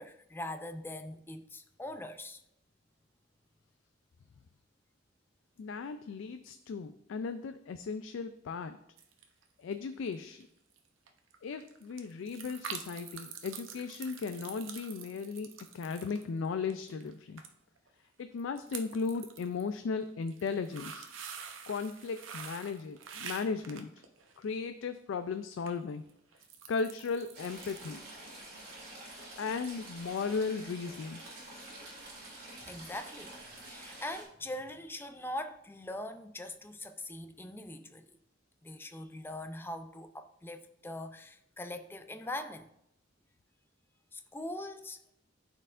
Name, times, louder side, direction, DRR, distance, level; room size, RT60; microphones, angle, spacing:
voice 1, 0.0-2.4 32.7-33.3 33.6-38.2 38.6-42.7 44.1-45.0, left 1 dB, 10° left, 0.4 m, -42 dB
voice 2, 5.6-8.8 9.6-10.5 11.4-17.4 18.2-21.1 21.7-23.9 24.4-26.0 26.7-28.0 29.4-31.2, left 5 dB, 75° left, 0.3 m, -36 dB
sound 1, 9.0-9.4 9.7-10.1 10.4-10.5 10.7-10.8 11.1-17.1 17.4-17.5 17.8-17.9 18.4-19.6 20.1-24.5 25.6-25.7 26.1-28.1 28.4-28.5, right 7 dB, 90° right, 0.7 m, -46 dB
Stream / Trickle dribble, 27.3-34.2, right 2 dB, 55° right, 2.3 m, -48 dB
12.0 x 4.5 x 2.5 m
head